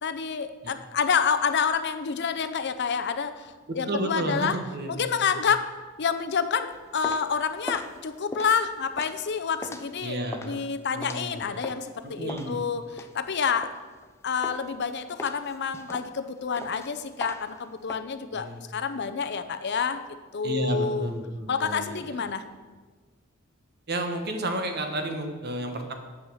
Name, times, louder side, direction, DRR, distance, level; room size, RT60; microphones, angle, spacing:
voice 1, 0.0-4.6 4.9-5.6 6.0-13.7 14.2-18.5 18.7-20.0 20.3-21.1 21.5-22.4, left 6 dB, 55° left, 10 dB, 0.6 m, -28 dB
voice 2, 3.7-5.0 10.0-10.6 10.9-11.5 12.0-12.6 18.3-18.6 20.4-22.2 23.9-25.9, right 1 dB, 50° right, 5 dB, 1.2 m, -31 dB
sound 1, 6.7-11.9 12.3-14.1 14.4-14.8 15.2-18.0, left 2 dB, 15° left, 0.6 m, -40 dB
8.5 x 5.6 x 7.7 m, 1.4 s
head